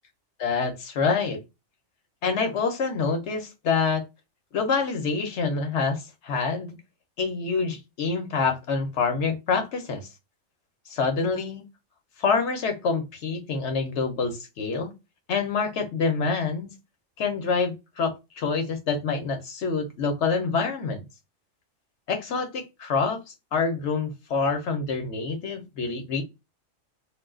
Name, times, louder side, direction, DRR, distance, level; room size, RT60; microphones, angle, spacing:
voice 1, 0.4-1.4 2.2-4.0 4.5-6.8 7.2-10.0 10.9-11.6 12.2-14.9 15.3-16.7 17.2-21.0 22.1-23.2 23.5-26.2, left 4 dB, 60° left, 1.0 m, -26 dB
2.5 x 2.3 x 3.5 m
omnidirectional pair, 1.4 m